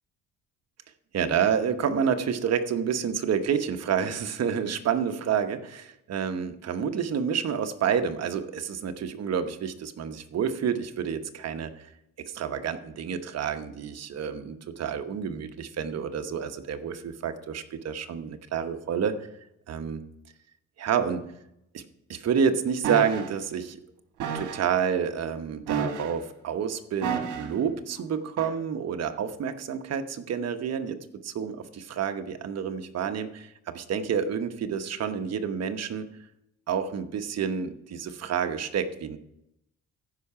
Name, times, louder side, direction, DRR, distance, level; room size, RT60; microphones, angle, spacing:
voice 1, 1.1-11.9 12.3-19.1 19.7-20.0 20.8-21.2 21.7-21.8 22.1-23.8 24.3-36.0 36.7-39.2, right 7 dB, 55° right, 8 dB, 1.0 m, -29 dB
sound 1, 22.8-23.3 24.2-24.7 25.7-26.3 27.0-27.6 28.4-28.5, right 7 dB, 80° right, 1.5 m, -30 dB
14.5 x 5.7 x 4.9 m, 0.82 s
cardioid pair, 90°, 30 cm